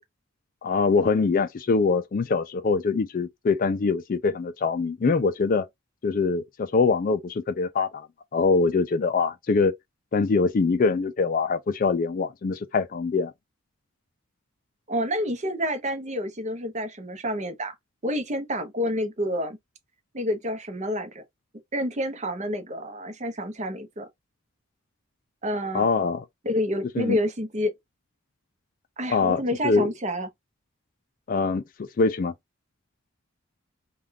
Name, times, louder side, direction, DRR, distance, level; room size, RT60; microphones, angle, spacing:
voice 1, 0.6-5.7 6.0-8.1 8.3-9.7 10.1-13.3 25.7-26.2 27.0-27.2 29.1-29.9 31.3-32.3, left 4 dB, 40° left, 0.3 m, -23 dB
voice 2, 14.9-17.7 18.0-19.6 20.1-21.2 21.7-24.1 25.4-25.9 26.4-27.7 29.0-30.3, equal, 35° right, 0.7 m, -28 dB
3.5 x 2.3 x 2.2 m
head